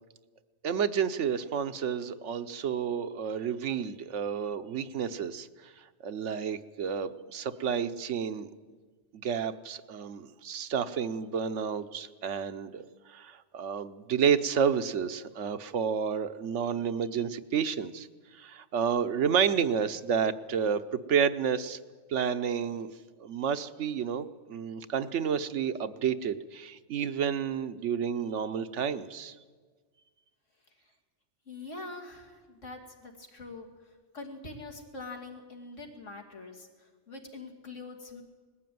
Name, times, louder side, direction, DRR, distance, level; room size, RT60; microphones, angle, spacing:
voice 1, 0.6-5.5 6.0-8.5 9.1-18.1 18.4-21.8 22.1-22.9 23.2-29.3, right 7 dB, 75° right, 11 dB, 1.2 m, -30 dB
voice 2, 31.5-38.2, left 3 dB, 90° left, 2 dB, 2.9 m, -44 dB
20.0 x 15.0 x 9.3 m, 1.5 s
omnidirectional pair, 1.2 m